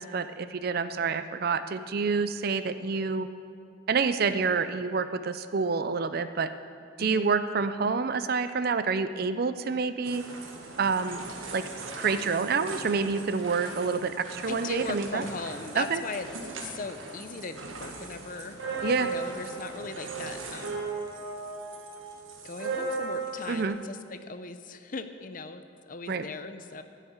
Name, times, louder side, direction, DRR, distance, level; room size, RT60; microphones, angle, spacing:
voice 1, 0.0-3.3 3.9-6.5 7.0-10.2 10.8-11.2 11.5-11.6 12.0-15.2 15.7-16.0 18.8-19.1 23.5-23.8 26.1-26.2, right 5 dB, 50° right, 12 dB, 0.5 m, -28 dB
voice 2, 7.0-7.3 14.5-18.7 19.0-20.8 22.4-26.8, left 4 dB, 40° left, 9 dB, 0.6 m, -39 dB
sound 1, 10.0-23.6, right 3 dB, 80° right, 1.6 m, -38 dB
12.5 x 6.7 x 8.9 m, 2.3 s
head